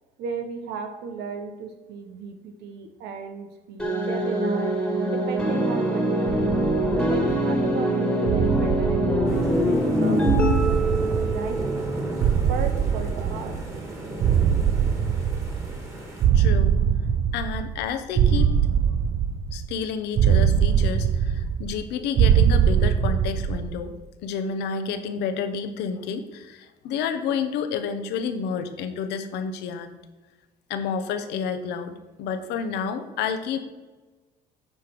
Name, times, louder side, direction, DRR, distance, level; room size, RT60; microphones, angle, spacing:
voice 1, 0.2-4.8 5.0-6.5 7.1-9.4 9.7-11.6 12.5-13.6, right 5 dB, 80° right, 6 dB, 0.9 m, -35 dB
sound 1, 3.8-12.2, equal, 5° left, 1.6 m, -24 dB
sound 2, 6.3-7.6 8.3-9.8 10.3-11.9 12.2-13.8 14.2-15.9 16.2-17.8 18.2-19.8 20.2-21.8 22.2-23.8, right 8 dB, 55° right, 0.4 m, -22 dB
sound 3, 9.3-16.3, right 2 dB, 15° right, 1.9 m, -35 dB
voice 2, 16.3-16.8 17.3-18.5 18.8-18.9 19.5-23.9 24.2-30.0 30.7-31.9 32.2-33.6, left 6 dB, 85° left, 9 dB, 0.8 m, -30 dB
8.8 x 3.2 x 5.9 m, 1.3 s
cardioid pair, 110°, 17 cm